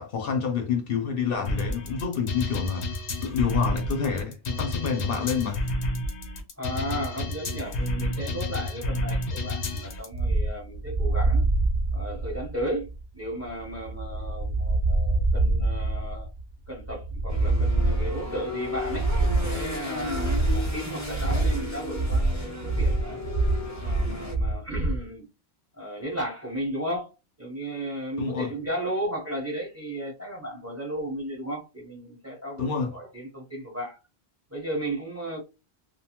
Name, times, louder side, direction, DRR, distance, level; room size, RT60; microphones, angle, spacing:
voice 1, 0.0-5.6 28.2-28.5 32.6-32.9, left 6 dB, 65° left, 0.7 m, -28 dB
sound 1, 1.5-10.1, left 1 dB, 90° left, 1.0 m, -30 dB
voice 2, 6.6-11.4 11.9-12.9 13.1-16.3 16.7-23.2 23.8-25.2 25.8-27.1 27.4-34.0 34.5-35.4, right 1 dB, 15° right, 0.7 m, -34 dB
sound 2, 10.1-25.0, right 2 dB, 45° right, 0.3 m, -26 dB
sound 3, 17.3-24.3, left 2 dB, 20° left, 0.5 m, -35 dB
2.6 x 2.2 x 2.8 m
omnidirectional pair, 1.1 m